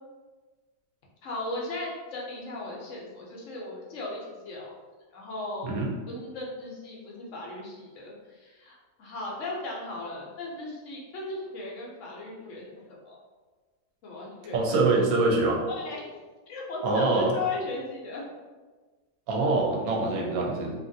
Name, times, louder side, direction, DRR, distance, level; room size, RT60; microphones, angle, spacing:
voice 1, 1.2-4.8 5.1-5.7 6.1-13.2 14.0-15.0 15.7-16.1 16.5-18.3, left 2 dB, 60° left, -3 dB, 0.9 m, -36 dB
voice 2, 14.5-15.6 16.8-17.3 19.3-20.8, right 2 dB, 70° right, -1 dB, 1.0 m, -24 dB
2.8 x 2.5 x 2.6 m, 1.3 s
omnidirectional pair, 1.7 m